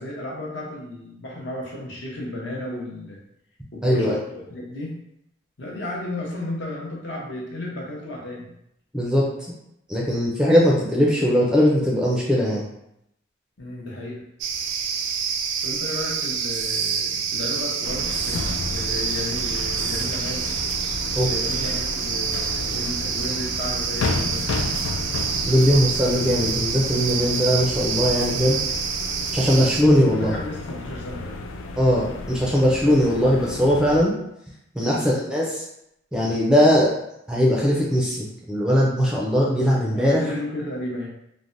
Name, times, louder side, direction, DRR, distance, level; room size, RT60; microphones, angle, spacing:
voice 1, 0.0-3.2 3.7-5.0 5.6-8.5 13.6-14.2 15.6-20.4 21.2-24.6 29.5-29.8 30.1-31.4 34.8-35.1 39.9-41.1, left 1 dB, 60° left, -3 dB, 0.7 m, -33 dB
voice 2, 3.8-4.2 8.9-9.2 9.9-12.6 21.1-21.3 25.5-28.6 29.3-30.4 31.8-34.1 34.7-35.6 36.1-36.9 37.3-40.2, equal, 5° right, -4 dB, 0.4 m, -20 dB
sound 1, 14.4-29.8, right 6 dB, 75° right, 0.3 m, -27 dB
sound 2, 17.8-34.1, left 2 dB, 80° left, 0.3 m, -32 dB
3.2 x 2.1 x 2.5 m, 0.78 s
head